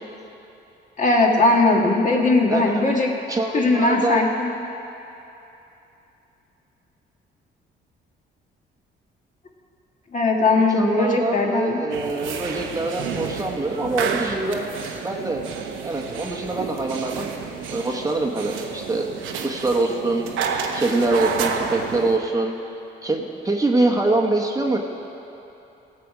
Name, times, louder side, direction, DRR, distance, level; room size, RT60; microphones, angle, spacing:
voice 1, 1.0-3.1 3.5-4.5 10.1-11.8, left 2 dB, 40° left, 0 dB, 1.8 m, -19 dB
voice 2, 3.3-4.3 10.7-14.6 15.0-15.4 15.8-17.3 17.7-19.1 19.4-20.3 20.7-22.5 23.0-24.8, right 2 dB, 15° right, 0 dB, 1.0 m, -24 dB
sound 1, 11.9-22.2, right 6 dB, 85° right, 0.9 m, -30 dB
17.0 x 7.7 x 4.9 m, 2.9 s
cardioid pair, 90°, 20 cm